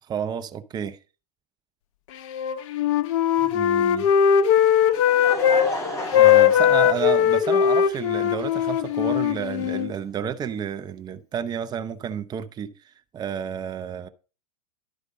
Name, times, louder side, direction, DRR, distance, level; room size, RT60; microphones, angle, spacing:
voice 1, 0.1-1.0 3.4-4.1 6.1-12.7 13.1-14.1, right 8 dB, 20° right, 0.7 m, -30 dB
Wind instrument woodwind instrument, 2.3-5.7 6.0-9.9, left 9 dB, 60° left, 0.9 m, -19 dB
Laughter, 4.5-7.8 8.6-8.7 10.2-10.3, left 1 dB, 15° left, 3.6 m, -33 dB
11.5 x 4.9 x 5.1 m
hypercardioid pair, 115°, 18 cm